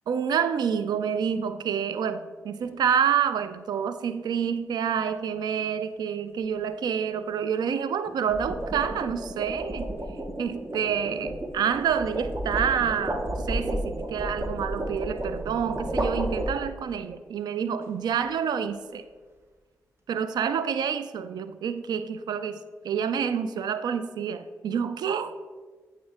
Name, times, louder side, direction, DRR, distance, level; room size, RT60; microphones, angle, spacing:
voice 1, 0.1-9.9 10.4-19.0 20.1-22.6 22.8-25.3, right 7 dB, 80° right, 12 dB, 0.4 m, -28 dB
sound 1, 2.6-2.9 8.1-17.0, right 1 dB, 35° right, 1.0 m, -32 dB
8.6 x 3.5 x 3.6 m, 1.4 s
supercardioid pair, 40°, 7 cm